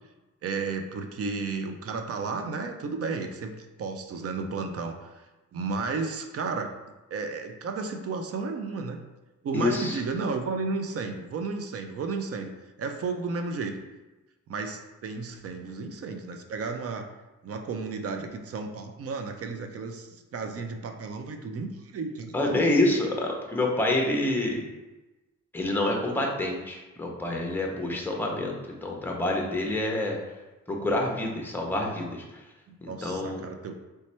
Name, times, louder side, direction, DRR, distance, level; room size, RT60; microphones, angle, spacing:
voice 1, 0.4-5.2 5.5-6.7 7.1-9.0 9.4-13.8 14.5-17.1 17.4-22.8 32.7-33.8, right 4 dB, 50° right, 6 dB, 0.5 m, -33 dB
voice 2, 9.5-10.0 22.3-24.6 25.5-30.2 30.7-32.4 32.8-33.4, left 2 dB, 5° left, 0 dB, 0.6 m, -27 dB
3.3 x 3.1 x 4.3 m, 1.1 s
wide cardioid pair, 160°, 31 cm